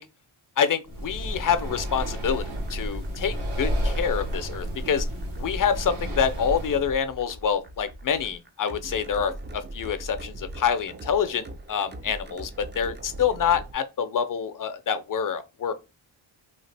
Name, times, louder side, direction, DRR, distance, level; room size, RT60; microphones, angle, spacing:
voice 1, 0.6-2.4 2.7-5.1 5.4-15.7, left 7 dB, 45° left, 0.4 m, -26 dB
Breathing, 0.8-7.0, equal, 85° right, 1.2 m, -31 dB
sound 1, 1.8-13.7, right 1 dB, 25° right, 0.4 m, -42 dB
2.8 x 2.4 x 3.2 m
wide cardioid pair, 85°, 48 cm